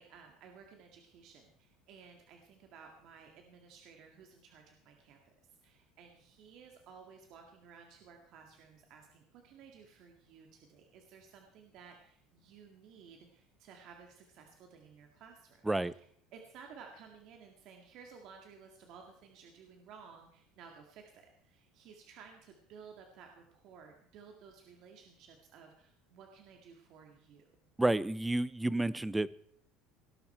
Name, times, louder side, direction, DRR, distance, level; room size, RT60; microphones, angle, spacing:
voice 1, 0.0-5.2 5.6-16.1 16.3-27.4, right 6 dB, 45° right, 3 dB, 2.1 m, -56 dB
voice 2, 27.8-29.3, right 2 dB, 5° right, 19 dB, 0.4 m, -30 dB
18.0 x 11.5 x 4.5 m, 0.62 s
cardioid pair, 165°, 0 cm